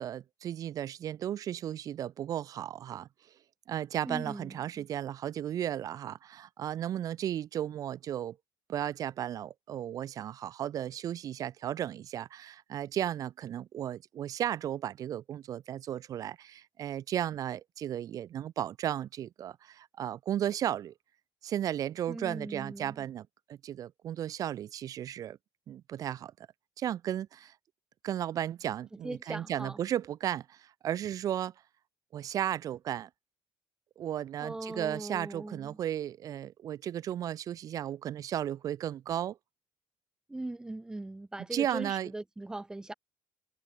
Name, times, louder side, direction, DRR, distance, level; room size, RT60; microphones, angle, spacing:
voice 1, 0.0-3.1 3.7-8.4 8.7-20.9 21.4-25.4 25.7-26.3 26.8-27.5 28.0-31.5 32.1-33.1 34.0-39.4 41.5-42.1, right 11 dB, 40° right, 0.6 m, -35 dB
voice 2, 4.0-4.9 22.1-23.0 29.0-29.8 34.4-35.8 40.3-42.9, right 2 dB, 10° right, 0.9 m, -40 dB
cardioid pair, 145°, 9 cm